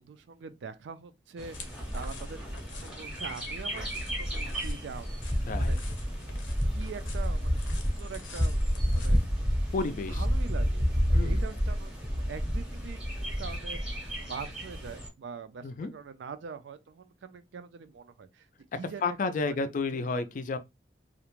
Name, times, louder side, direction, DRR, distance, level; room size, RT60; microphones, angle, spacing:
voice 1, 0.0-5.8 6.7-8.6 8.9-9.4 10.1-14.0 14.2-18.5 18.7-20.1, right 5 dB, 75° right, 0.4 m, -44 dB
Bird, 1.4-15.1, equal, 5° right, 0.7 m, -30 dB
sound 1, 1.5-9.3, left 3 dB, 90° left, 0.6 m, -48 dB
voice 2, 9.7-10.2 11.1-11.4 15.6-15.9 19.0-20.6, left 4 dB, 45° left, 0.3 m, -31 dB
2.4 x 2.1 x 3.0 m
head